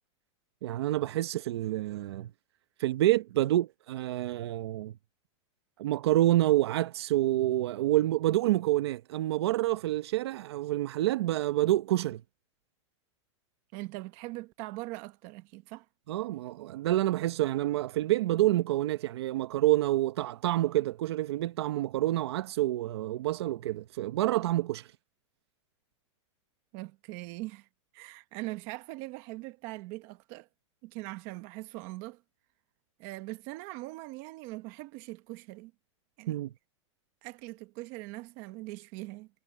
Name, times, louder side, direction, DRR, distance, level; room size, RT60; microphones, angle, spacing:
voice 1, 0.6-2.3 2.8-4.9 5.8-12.2 16.1-24.9 36.3-36.5, right 15 dB, 55° right, 0.8 m, -28 dB
voice 2, 13.7-15.8 26.7-27.7 27.9-30.5 30.8-32.2 33.0-35.7 36.2-36.4 37.2-39.3, right 21 dB, 35° right, 1.3 m, -41 dB
supercardioid pair, 175°, 16 cm